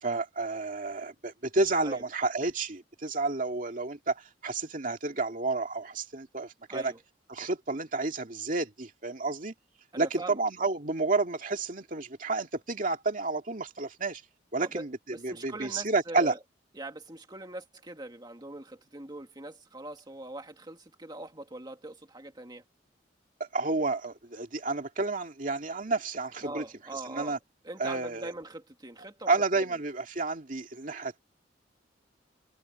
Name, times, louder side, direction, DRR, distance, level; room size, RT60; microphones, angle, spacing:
voice 1, 0.0-6.9 7.3-9.5 10.0-14.2 14.5-16.3 23.4-26.6 27.1-27.4 27.8-28.3 29.3-31.2, right 3 dB, 45° right, 2.4 m, -30 dB
voice 2, 9.9-10.4 14.6-14.8 15.1-16.4 16.8-22.6 26.4-27.4 27.6-29.3, right 2 dB, 25° right, 2.1 m, -42 dB
head